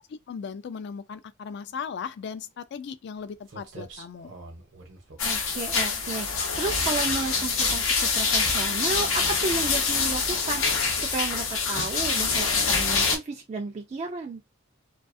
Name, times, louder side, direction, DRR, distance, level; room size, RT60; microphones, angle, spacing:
voice 1, 0.3-4.3, left 6 dB, 55° left, 0.3 m, -37 dB
sound 1, 3.2-3.3 3.5-6.1 6.5-6.7 7.1-8.0 8.5-8.8 9.2-9.6 9.9-10.3 10.7-10.9 11.3-11.7, right 2 dB, 60° right, 0.8 m, -44 dB
sound 2, 5.2-13.2, left 4 dB, 85° left, 0.7 m, -25 dB
voice 2, 5.2-14.4, right 3 dB, 35° right, 0.3 m, -33 dB
2.3 x 2.3 x 2.5 m
head